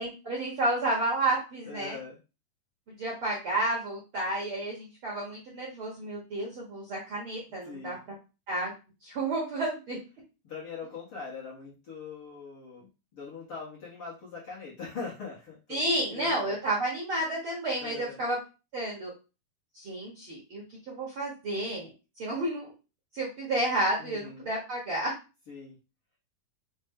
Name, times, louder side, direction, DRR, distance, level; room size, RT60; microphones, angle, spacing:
voice 1, 0.0-2.0 3.0-7.9 8.5-8.7 9.0-10.0 15.7-18.4 18.7-19.1 19.7-21.9 22.2-22.7 23.1-25.1, right 1 dB, 60° right, -3 dB, 1.4 m, -31 dB
voice 2, 1.6-2.2 7.6-8.0 10.4-16.5 17.8-18.2 24.0-24.5 25.5-25.8, left 5 dB, 55° left, -6 dB, 1.7 m, -42 dB
5.5 x 2.6 x 3.6 m, 0.30 s
omnidirectional pair, 4.0 m